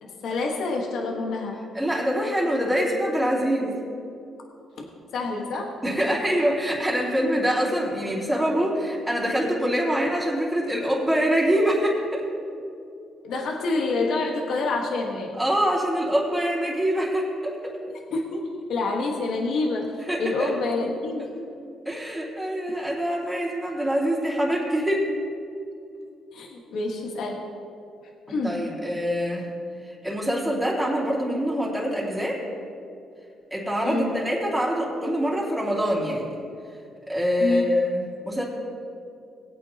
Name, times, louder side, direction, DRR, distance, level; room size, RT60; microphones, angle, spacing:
voice 1, 0.0-1.7 4.8-4.9 5.1-5.8 13.2-15.4 18.1-21.4 26.3-27.5 28.3-28.7 33.8-34.1 37.4-37.8, left 3 dB, 70° left, 0 dB, 1.4 m, -27 dB
voice 2, 1.7-3.7 5.8-12.2 15.4-17.7 20.0-20.5 21.8-25.1 28.4-29.5 29.8-32.4 33.5-36.3 37.1-38.4, equal, 5° right, -7 dB, 2.9 m, -25 dB
19.5 x 8.6 x 2.9 m, 2.5 s
cardioid pair, 90°, 0 cm